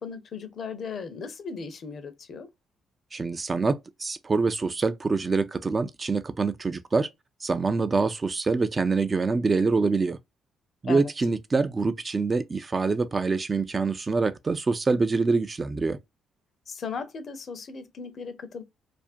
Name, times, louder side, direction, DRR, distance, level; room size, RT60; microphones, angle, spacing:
voice 1, 0.0-2.5 10.8-11.0 16.7-18.6, left 5 dB, 55° left, 0.6 m, -37 dB
voice 2, 3.1-7.1 7.4-10.2 10.8-16.0, right 4 dB, 35° right, 0.3 m, -25 dB
2.4 x 2.1 x 2.4 m
hypercardioid pair, 50°, 0 cm